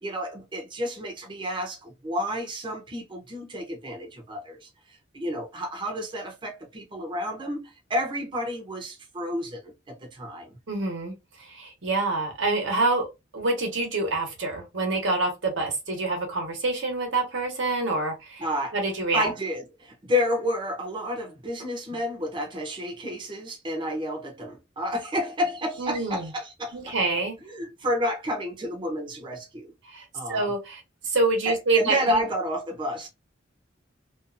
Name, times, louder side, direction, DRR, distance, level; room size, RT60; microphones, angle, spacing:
voice 1, 0.0-10.6 18.4-18.8 19.1-27.0 27.4-29.7 30.1-30.5 31.4-33.1, equal, 25° right, 0.7 m, -30 dB
voice 2, 10.7-11.1 11.5-13.1 13.3-18.4 18.7-19.3 25.8-26.3 26.7-27.3 29.9-32.2, right 3 dB, 90° right, 1.1 m, -26 dB
2.6 x 2.4 x 2.4 m
head